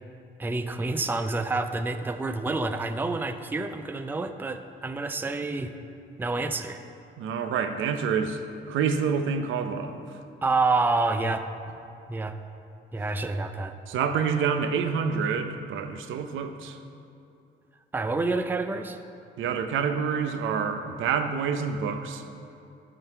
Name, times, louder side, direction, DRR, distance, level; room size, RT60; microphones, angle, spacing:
voice 1, 0.4-5.7 6.2-6.8 10.4-11.5 12.1-12.4 12.9-13.7 17.9-19.0, right 3 dB, 10° right, 8 dB, 0.4 m, -28 dB
voice 2, 7.2-8.4 8.7-10.0 13.9-16.8 19.4-22.2, right 6 dB, 80° right, 8 dB, 0.6 m, -27 dB
9.5 x 3.9 x 6.6 m, 2.6 s
cardioid pair, 90°, 20 cm